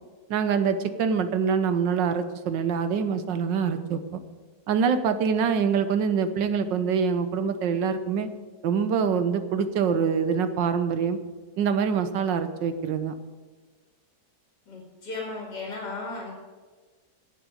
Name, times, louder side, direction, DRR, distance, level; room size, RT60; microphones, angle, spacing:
voice 1, 0.3-4.0 4.7-8.3 8.6-11.2 11.6-13.1, right 6 dB, 90° right, 10 dB, 1.6 m, -25 dB
voice 2, 14.7-16.3, left 3 dB, 75° left, -1 dB, 3.0 m, -35 dB
10.0 x 8.2 x 9.2 m, 1.3 s
omnidirectional pair, 1.9 m